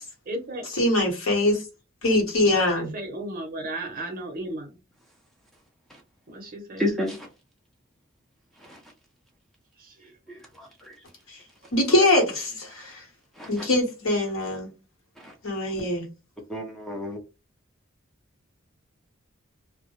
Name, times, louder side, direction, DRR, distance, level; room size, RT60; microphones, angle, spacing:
voice 1, 0.3-0.7 2.8-4.7 6.3-6.9 9.8-10.1, right 1 dB, 45° right, 0.6 m, -35 dB
voice 2, 0.8-1.6 2.0-2.9 11.7-13.0 13.5-14.7 15.4-16.0, left 1 dB, 80° left, 1.0 m, -23 dB
voice 3, 6.8-7.3 8.7-8.8 10.6-10.9 13.4-13.7 15.2-15.3 16.5-17.2, left 1 dB, ahead, 0.5 m, -30 dB
2.2 x 2.0 x 2.9 m
head